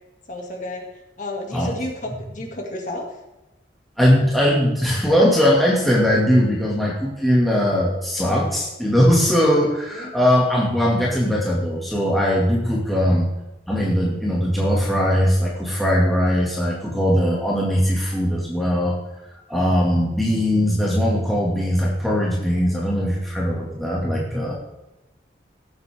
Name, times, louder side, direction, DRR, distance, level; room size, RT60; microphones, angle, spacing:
voice 1, 0.3-0.9 1.2-3.1 9.9-10.1 13.1-13.2, left 1 dB, 45° left, 1 dB, 2.2 m, -32 dB
voice 2, 4.0-13.2 13.7-19.0 19.5-24.6, equal, ahead, -5 dB, 2.1 m, -20 dB
17.0 x 8.0 x 3.6 m, 0.98 s
head